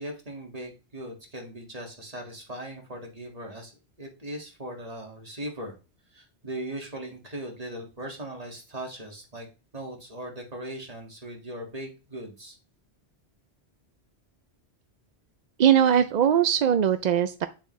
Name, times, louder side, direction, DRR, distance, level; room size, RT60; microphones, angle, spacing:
voice 1, 0.0-3.7 4.0-5.8 6.1-9.5 9.7-12.6, right 1 dB, 35° right, 1 dB, 2.0 m, -39 dB
voice 2, 15.6-17.5, right 9 dB, 55° right, 10 dB, 0.5 m, -20 dB
9.2 x 6.9 x 3.2 m, 0.32 s
omnidirectional pair, 1.1 m